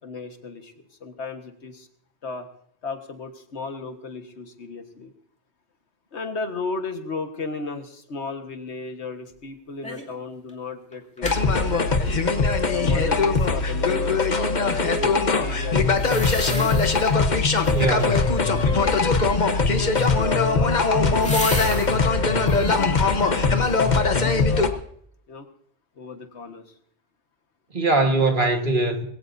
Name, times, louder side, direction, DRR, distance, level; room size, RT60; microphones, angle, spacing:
voice 1, 0.0-0.7 1.0-1.9 2.2-2.5 2.8-5.1 6.1-11.9 12.7-16.8 17.9-22.1 22.7-24.8 25.3-25.5 26.0-26.7, left 4 dB, 85° left, 1.7 m, -35 dB
bouteille savons vide, 9.8-10.2 10.5-10.6 10.9-11.4 15.9-17.1 17.5-18.0 20.0-22.0 22.4-22.8 23.3-23.9 24.3-24.4, equal, 5° left, 2.4 m, -34 dB
sound 1, 11.2-24.7, left 4 dB, 45° left, 1.2 m, -21 dB
voice 2, 17.7-18.4 27.7-29.0, right 2 dB, 50° right, 1.8 m, -21 dB
21.5 x 16.5 x 2.7 m
omnidirectional pair, 1.1 m